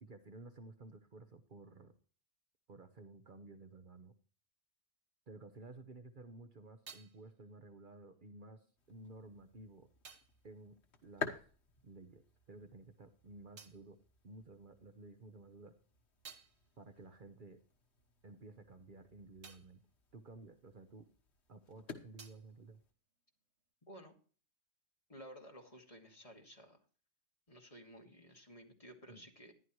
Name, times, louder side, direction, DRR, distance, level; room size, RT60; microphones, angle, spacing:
voice 1, 0.0-1.9 2.7-4.1 5.3-8.6 8.9-9.9 10.4-11.3 11.8-12.2 12.5-14.0 14.2-15.7 16.8-17.6 18.2-19.8 20.1-21.1 21.5-22.8 29.1-29.2, right 3 dB, 50° right, 8 dB, 1.1 m, -54 dB
sound 1, 6.1-12.0 12.3-15.0 15.4-21.4 21.7-23.7, right 6 dB, 90° right, 1.6 m, -62 dB
sound 2, 8.8-22.9, left 4 dB, 80° left, 1.5 m, -52 dB
voice 2, 25.1-26.8 27.5-29.5, equal, 30° left, 1 dB, 2.5 m, -54 dB
13.5 x 11.0 x 3.1 m, 0.40 s
omnidirectional pair, 1.1 m